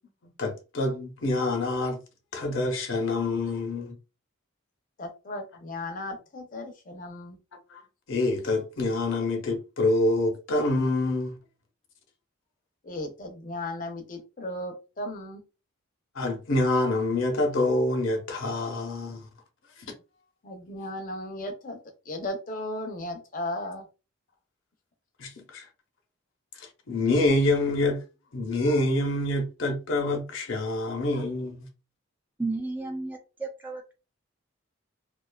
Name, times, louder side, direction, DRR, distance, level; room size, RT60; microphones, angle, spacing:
voice 1, 0.4-2.0 2.3-3.9 7.7-7.8 8.1-11.3 16.1-19.2 25.2-25.7 26.6-28.0 28.3-31.7, left 2 dB, 75° left, 0.7 m, -26 dB
voice 2, 5.0-7.4 12.8-15.4 20.4-21.8 22.1-23.9, left 1 dB, 40° left, 0.5 m, -36 dB
voice 3, 32.4-33.9, right 3 dB, 10° right, 0.3 m, -33 dB
2.5 x 2.3 x 2.2 m
head